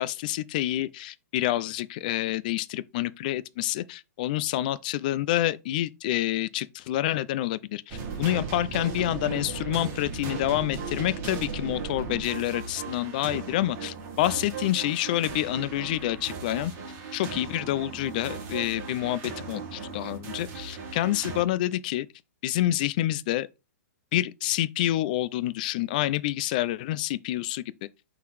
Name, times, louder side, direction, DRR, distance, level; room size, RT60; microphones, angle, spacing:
voice 1, 0.0-16.7 17.1-22.1 22.4-23.5 24.1-27.6, left 14 dB, 30° left, 0.4 m, -28 dB
sound 1, 7.9-21.4, right 5 dB, 25° right, 1.7 m, -37 dB
5.9 x 3.9 x 4.7 m
hypercardioid pair, 165°, 9 cm